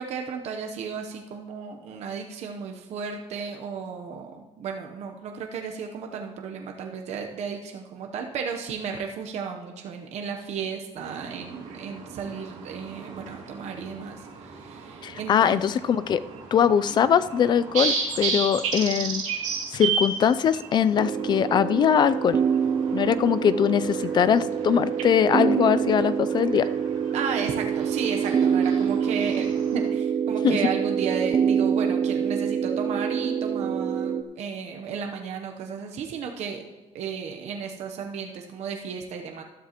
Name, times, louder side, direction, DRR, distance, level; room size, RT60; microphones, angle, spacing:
voice 1, 0.0-15.7 27.1-36.7 36.9-39.4, right 6 dB, 60° right, 3 dB, 0.9 m, -34 dB
sound 1, 11.0-29.9, right 5 dB, 75° right, 2.5 m, -35 dB
voice 2, 15.0-16.2 16.5-19.2 19.7-22.4 22.9-26.7 30.4-30.6, left 8 dB, 35° left, 15 dB, 0.3 m, -22 dB
sound 2, 21.0-34.2, right 7 dB, 30° right, 0.4 m, -26 dB
12.5 x 12.5 x 3.0 m, 1.1 s
cardioid pair, 160°, 12 cm